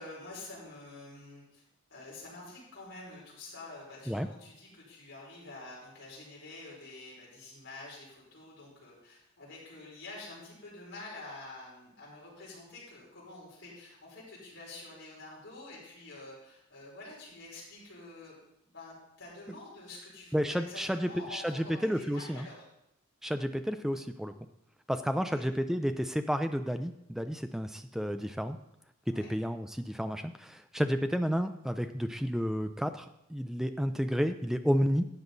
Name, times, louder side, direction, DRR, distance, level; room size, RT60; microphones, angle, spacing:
voice 1, 0.0-1.6 1.9-18.4 18.6-22.6 25.2-25.4 29.1-29.3, left 2 dB, 60° left, -5 dB, 4.9 m, -48 dB
voice 2, 20.3-22.5 23.2-24.3 24.9-28.6 29.2-35.1, equal, ahead, 8 dB, 0.4 m, -31 dB
12.5 x 8.0 x 4.0 m, 0.80 s
head